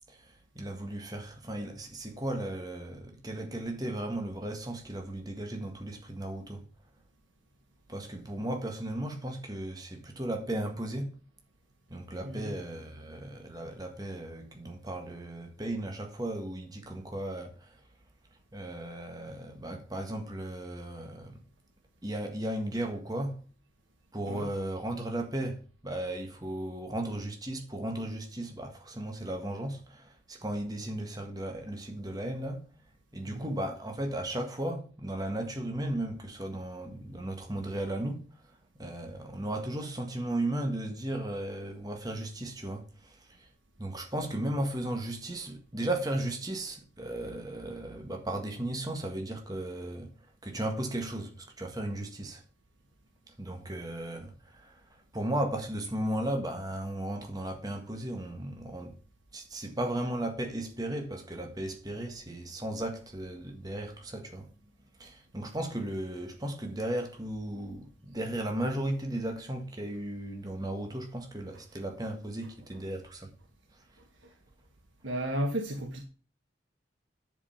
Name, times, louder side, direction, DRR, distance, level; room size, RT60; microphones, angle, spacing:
voice 1, 0.1-6.7 7.9-11.2 11.9-17.8 18.5-21.4 22.0-23.4 24.1-32.7 33.1-43.5 43.8-50.1 50.4-52.4 53.4-59.0 59.3-64.5 65.0-73.3 73.7-73.8, right 1 dB, 20° right, 1.6 m, -35 dB
voice 2, 75.0-76.0, right 1 dB, 80° right, 1.4 m, -33 dB
11.0 x 5.1 x 5.7 m
head